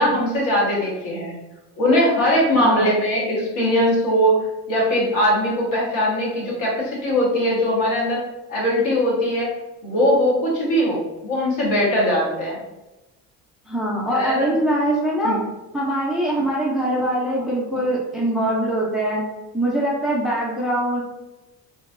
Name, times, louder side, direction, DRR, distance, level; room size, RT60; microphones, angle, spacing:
voice 1, 0.0-1.3 1.8-4.3 4.7-8.2 8.5-9.5 9.8-12.6 14.1-14.5 15.2-15.4, equal, 65° left, -4 dB, 1.3 m, -20 dB
voice 2, 2.5-3.0 13.7-15.4 15.7-19.2 19.5-21.0, right 1 dB, ahead, -4 dB, 0.3 m, -23 dB
2.9 x 2.6 x 2.4 m, 1.0 s
cardioid pair, 150°, 32 cm